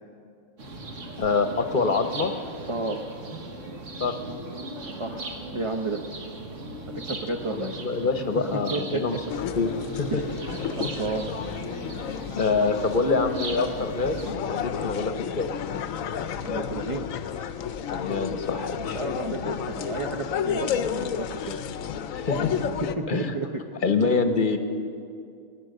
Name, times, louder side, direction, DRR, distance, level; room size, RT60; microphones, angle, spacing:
sound 1, 0.6-14.3, right 2 dB, 70° right, 1.7 m, -38 dB
voice 1, 1.2-2.3 4.0-4.1 7.5-9.2 9.5-10.2 10.8-10.9 12.4-15.5 17.9-19.0 22.1-22.6 23.1-23.3 23.8-24.6, left 4 dB, 45° left, 7 dB, 1.0 m, -25 dB
voice 2, 5.0-6.0 7.0-7.7 8.5-9.0 10.1-11.3 16.4-17.1 18.9-21.6 23.0-23.6, right 3 dB, 30° right, 3 dB, 0.7 m, -32 dB
sound 2, 9.3-22.9, left 8 dB, 90° left, 1.1 m, -32 dB
20.5 x 9.8 x 6.6 m, 2.5 s
omnidirectional pair, 1.4 m